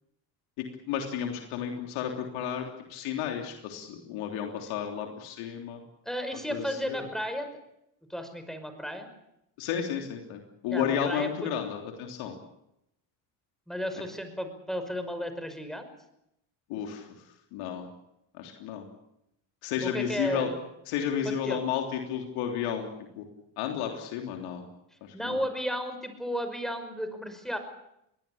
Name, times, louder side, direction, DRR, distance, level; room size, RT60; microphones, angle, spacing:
voice 1, 0.6-5.8 6.5-7.1 9.6-12.3 16.7-17.1 17.5-17.9 18.4-18.8 19.6-20.5 20.9-22.9 23.2-23.3 23.6-24.6 25.0-25.4, left 8 dB, 80° left, 3 dB, 3.5 m, -32 dB
voice 2, 6.1-7.5 8.1-9.1 10.7-11.5 13.7-15.9 19.8-20.6 21.2-21.7 25.1-27.6, equal, ahead, 8 dB, 5.4 m, -33 dB
23.0 x 18.0 x 8.7 m, 0.82 s
supercardioid pair, 85°, 49 cm